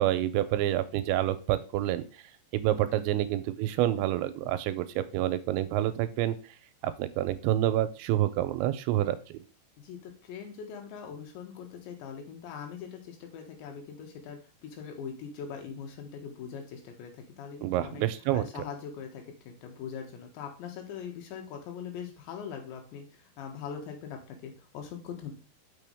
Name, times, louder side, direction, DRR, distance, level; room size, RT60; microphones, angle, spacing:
voice 1, 0.0-2.0 2.5-6.3 6.8-9.4 17.6-18.4, right 13 dB, 85° right, 11 dB, 2.8 m, -28 dB
voice 2, 9.8-18.0 18.3-25.3, left 7 dB, 80° left, 3 dB, 3.7 m, -42 dB
6.9 x 6.1 x 3.4 m, 0.37 s
omnidirectional pair, 5.3 m